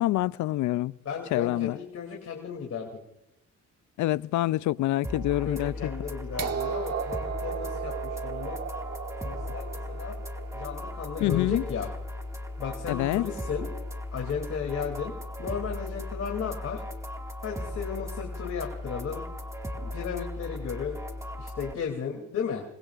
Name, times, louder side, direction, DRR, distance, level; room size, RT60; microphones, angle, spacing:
voice 1, 0.0-1.0 1.3-1.8 4.0-5.7 11.2-11.6 12.9-13.3, left 16 dB, 75° left, 0.5 m, -26 dB
voice 2, 1.0-3.0 5.3-8.6 9.2-10.2 10.5-11.9 12.6-13.7 14.1-15.1 15.4-16.8 17.4-19.2 19.8-21.0 21.4-22.6, left 6 dB, 55° left, 2.8 m, -34 dB
sound 1, 5.0-21.7, left 1 dB, 10° right, 1.9 m, -37 dB
sound 2, 6.4-12.2 13.4-13.5, right 7 dB, 55° right, 1.5 m, -36 dB
27.5 x 21.0 x 2.5 m
cardioid pair, 90°, 30 cm